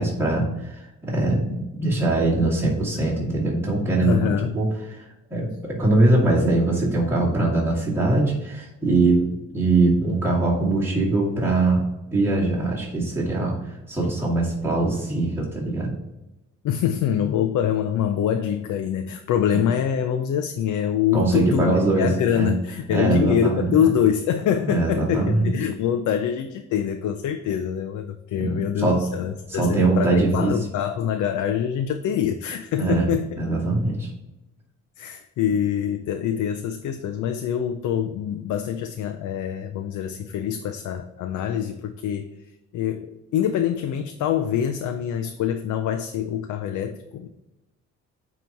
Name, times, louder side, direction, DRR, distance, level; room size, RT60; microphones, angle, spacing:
voice 1, 0.0-11.8 12.1-13.6 13.9-15.9 19.5-19.6 21.1-22.5 22.9-23.7 24.7-25.5 28.4-29.0 29.5-30.5 32.7-33.1 33.4-34.1, right 2 dB, 10° right, -7 dB, 2.3 m, -22 dB
voice 2, 4.0-4.6 16.6-33.3 35.0-42.3 42.7-47.3, left 9 dB, 75° left, 7 dB, 0.6 m, -25 dB
9.1 x 3.1 x 4.5 m, 0.97 s
cardioid pair, 90°, 30 cm